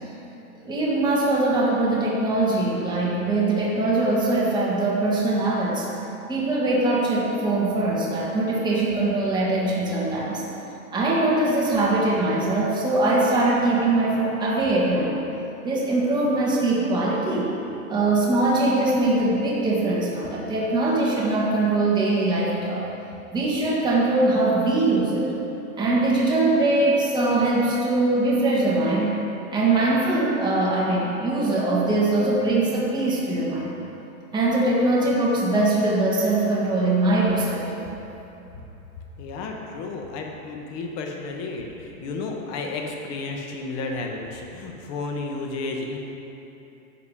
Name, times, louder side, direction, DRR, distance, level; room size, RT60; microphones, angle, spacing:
voice 1, 0.6-5.9 6.3-10.4 10.9-15.2 15.6-17.5 17.9-22.9 23.3-25.3 25.8-29.1 29.5-33.8 34.3-37.8, right 2 dB, 10° right, -6 dB, 1.7 m, -22 dB
voice 2, 39.2-46.0, left 3 dB, 35° left, 2 dB, 1.4 m, -32 dB
11.5 x 7.3 x 4.9 m, 2.9 s
supercardioid pair, 145°, 42 cm